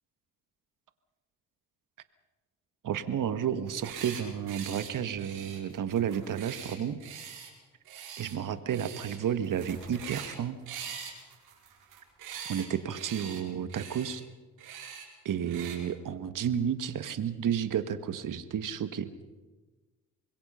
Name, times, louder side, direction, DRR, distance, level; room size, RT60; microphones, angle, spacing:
voice 1, 2.8-7.0 8.2-10.6 12.5-14.2 15.2-19.1, right 8 dB, 55° right, 11 dB, 1.7 m, -31 dB
sound 1, 3.6-4.2 4.5-4.9 5.2-7.5 7.8-8.4 8.7-9.2 9.4-10.3 10.7-12.7 12.9-13.4 13.7-14.1 14.6-15.0 15.5-15.8, right 8 dB, 80° right, 5.2 m, -43 dB
25.5 x 21.5 x 5.8 m, 1.2 s
supercardioid pair, 55°, 37 cm